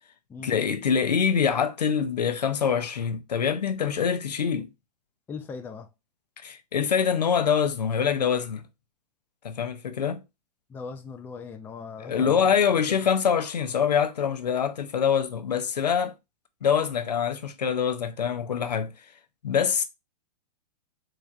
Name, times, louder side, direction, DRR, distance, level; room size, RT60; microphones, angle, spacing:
voice 1, 0.4-4.7 6.4-8.7 9.4-10.2 12.0-16.1 16.6-18.9 19.4-19.8, left 7 dB, 75° left, 0.6 m, -25 dB
voice 2, 5.3-5.9 10.7-13.0, left 5 dB, 10° left, 0.4 m, -39 dB
3.8 x 3.1 x 2.4 m
figure-of-eight pair, 110°, 21 cm